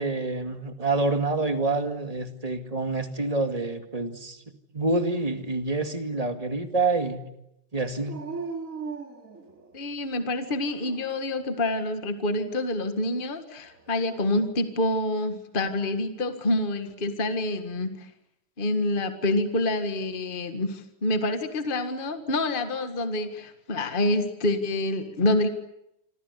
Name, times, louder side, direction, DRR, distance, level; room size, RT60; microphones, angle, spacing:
voice 1, 0.0-4.4 4.7-7.2 7.7-8.2, right 3 dB, 20° right, 7 dB, 2.2 m, -27 dB
Dog, 8.0-10.0 10.6-11.4 13.7-14.5, right 4 dB, 40° right, 3.1 m, -39 dB
voice 2, 9.7-18.1 18.6-25.5, left 1 dB, 25° left, 8 dB, 1.9 m, -27 dB
26.5 x 25.5 x 8.4 m, 0.84 s
omnidirectional pair, 2.1 m